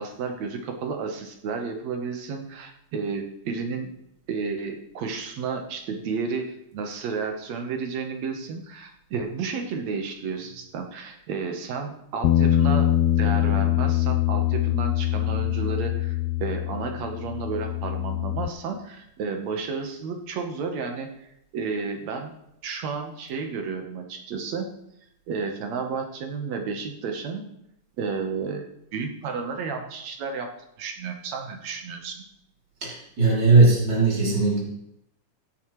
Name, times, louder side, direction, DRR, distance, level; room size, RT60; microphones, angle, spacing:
voice 1, 0.0-3.9 4.3-12.9 13.2-22.3 22.6-24.7 25.3-27.5 28.0-28.7 28.9-30.5 30.8-32.2, right 5 dB, 70° right, 4 dB, 2.3 m, -32 dB
Bass guitar, 12.2-18.5, left 13 dB, 85° left, 1.5 m, -23 dB
voice 2, 32.8-34.6, right 3 dB, 35° right, -4 dB, 3.7 m, -19 dB
16.5 x 9.9 x 3.2 m, 0.79 s
omnidirectional pair, 3.4 m